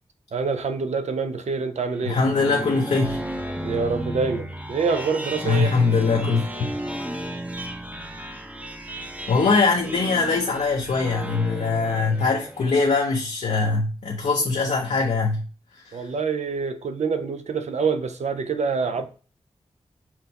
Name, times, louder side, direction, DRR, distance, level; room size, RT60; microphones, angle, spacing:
voice 1, 0.3-2.2 3.6-5.7 15.9-19.1, right 5 dB, 70° right, 0.6 m, -26 dB
sound 1, 1.9-12.8, right 1 dB, 10° right, 0.7 m, -33 dB
voice 2, 2.0-3.2 5.4-6.4 9.3-15.4 15.7-16.1, left 4 dB, 75° left, 0.7 m, -22 dB
5.8 x 2.2 x 4.1 m
cardioid pair, 45°, 12 cm